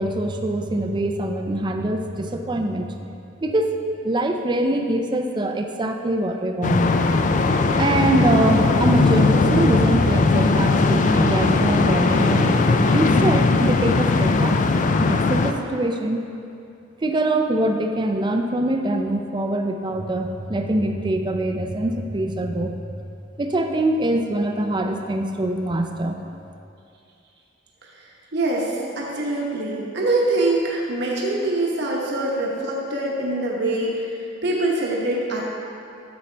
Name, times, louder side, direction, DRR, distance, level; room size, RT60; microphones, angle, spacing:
voice 1, 0.0-2.9 3.4-3.8 4.0-6.8 7.8-14.6 15.1-16.2 17.0-22.8 23.4-26.2, right 1 dB, 25° right, 4 dB, 0.4 m, -23 dB
sound 1, 6.6-15.5, left 3 dB, 40° left, 0.4 m, -19 dB
voice 2, 28.3-35.4, right 2 dB, 60° right, -3 dB, 1.1 m, -24 dB
9.2 x 7.0 x 3.3 m, 2.6 s
head